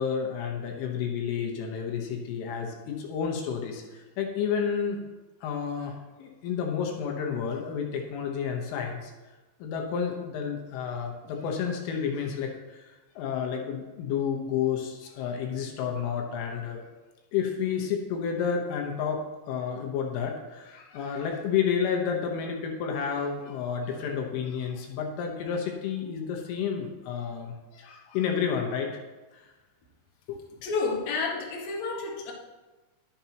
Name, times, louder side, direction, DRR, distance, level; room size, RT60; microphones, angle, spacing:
voice 1, 0.0-5.0 5.4-9.1 9.6-16.8 17.3-19.2 19.5-29.0 29.3-29.5 30.3-30.4, left 7 dB, 75° left, 2 dB, 3.5 m, -30 dB
voice 2, 30.6-32.3, left 4 dB, 60° left, -2 dB, 1.9 m, -30 dB
21.0 x 7.0 x 3.0 m, 1.2 s
omnidirectional pair, 6.0 m